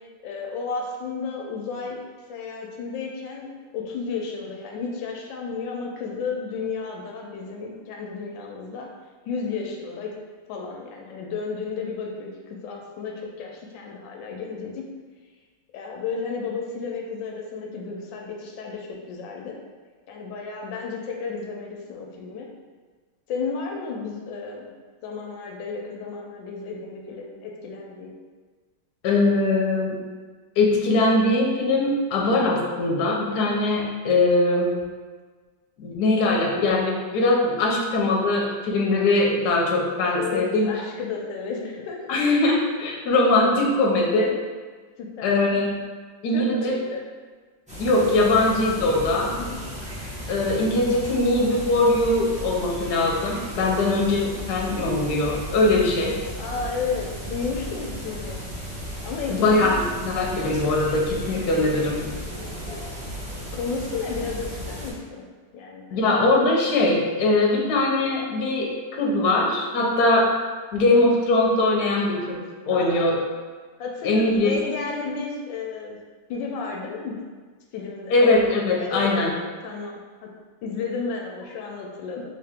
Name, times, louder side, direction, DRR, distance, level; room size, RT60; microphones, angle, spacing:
voice 1, 0.2-2.0 2.3-8.9 9.3-10.1 10.5-14.9 15.7-19.6 20.1-22.5 23.3-24.7 25.0-28.1 40.1-42.0 45.0-45.4 46.3-47.1 49.2-49.6 56.4-58.4 59.0-59.6 63.0-63.1 63.5-65.3 65.5-66.1 69.8-70.1 72.7-73.1 73.8-76.0 76.3-77.2 77.7-78.2 78.8-79.3 79.6-80.3 80.6-82.2, left 4 dB, 90° left, 0 dB, 1.3 m, -32 dB
voice 2, 29.0-30.0 30.6-34.8 35.8-40.7 42.1-44.3 45.2-45.8 46.2-46.7 47.8-49.3 50.3-56.2 59.3-62.1 65.9-70.2 70.7-73.2 74.0-74.5 78.1-79.3, left 2 dB, 70° left, -2 dB, 1.1 m, -21 dB
sound 1, 47.7-64.9, equal, 5° right, 0.6 m, -35 dB
3.4 x 2.8 x 3.5 m, 1.4 s
omnidirectional pair, 2.0 m